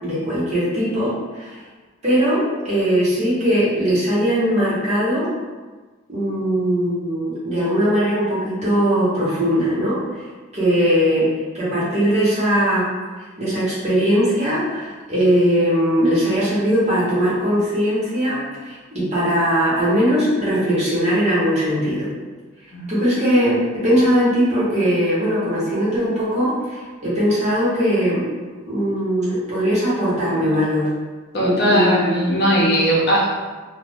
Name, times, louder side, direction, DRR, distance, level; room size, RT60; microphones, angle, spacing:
voice 1, 0.0-1.6 2.0-5.3 6.1-10.0 10.5-11.3 11.5-12.9 13.4-22.1 22.9-28.2 28.6-30.9 31.3-32.2, equal, 30° right, -9 dB, 1.0 m, -20 dB
voice 2, 31.3-33.4, equal, 50° left, -5 dB, 0.6 m, -19 dB
2.4 x 2.1 x 3.3 m, 1.3 s
head